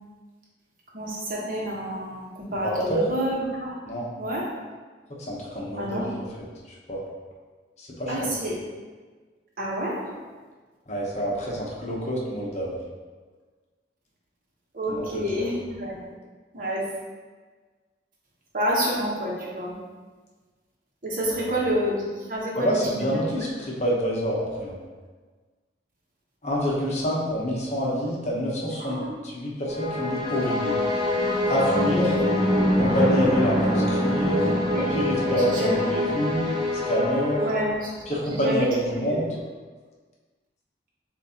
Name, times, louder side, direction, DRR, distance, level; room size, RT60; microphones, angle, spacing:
voice 1, 0.9-3.8 4.2-4.5 5.8-6.1 8.1-8.6 9.6-10.1 14.7-16.0 16.5-16.9 18.5-19.7 21.0-23.2 28.8-29.2 31.6-32.1 34.7-34.9 35.3-35.9 37.4-37.9 38.3-39.2, equal, 50° right, -4 dB, 1.1 m, -29 dB
voice 2, 2.6-3.1 3.8-4.1 5.2-6.2 6.9-7.0 7.8-8.3 10.9-12.8 14.9-15.4 21.3-21.4 22.6-24.8 26.4-30.8 31.2-32.1 32.7-34.5 34.9-36.5 36.8-37.4 38.1-39.3, equal, 40° left, -4 dB, 0.9 m, -27 dB
sound 1, 29.7-38.1, left 1 dB, 25° right, 0.8 m, -25 dB
7.3 x 2.6 x 2.8 m, 1.4 s
head